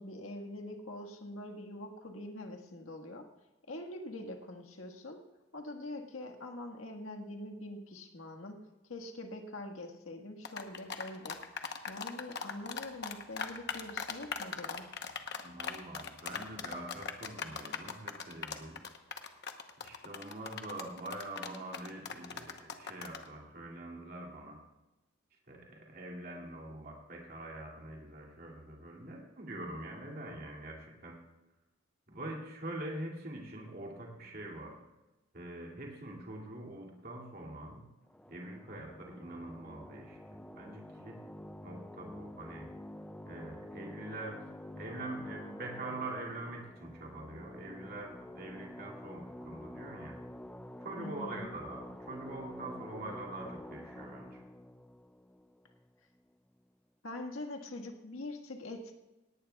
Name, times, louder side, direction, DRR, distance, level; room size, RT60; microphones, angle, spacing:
voice 1, 0.0-3.3 3.7-5.2 5.5-8.6 8.9-11.4 11.9-14.9 51.0-51.5 57.0-59.0, left 1 dB, 85° left, 3 dB, 1.6 m, -44 dB
sound 1, 10.4-23.3, left 6 dB, 55° left, 1.0 m, -39 dB
voice 2, 15.4-18.8 19.8-24.6 25.5-31.2 32.1-34.8 35.3-37.9 38.3-41.2 41.6-42.7 43.2-44.5 44.8-50.2 50.8-54.4, right 2 dB, 45° right, -1 dB, 2.6 m, -44 dB
sound 2, 38.1-56.2, left 1 dB, 5° left, 0.3 m, -48 dB
18.0 x 18.0 x 2.4 m, 1.1 s
head